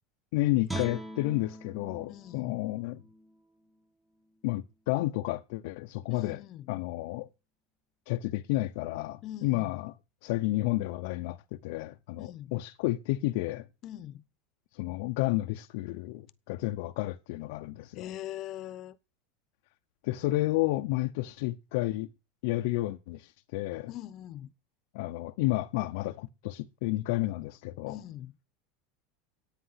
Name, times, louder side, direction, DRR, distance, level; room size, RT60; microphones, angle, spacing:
voice 1, 0.3-3.0 4.4-6.4 6.7-7.3 8.1-9.9 10.2-13.7 14.7-18.1 20.0-22.1 22.4-23.9 24.9-28.0, left 18 dB, 70° left, 0.7 m, -31 dB
Guitar, 0.7-3.8 4.2-4.4, right 1 dB, 5° right, 1.3 m, -42 dB
voice 2, 2.1-2.6 6.1-6.7 9.2-9.8 12.2-12.6 13.8-14.2 17.9-19.0 23.9-24.5 27.9-28.3, left 12 dB, 45° left, 1.0 m, -42 dB
10.5 x 9.0 x 5.8 m
supercardioid pair, 120°, 0 cm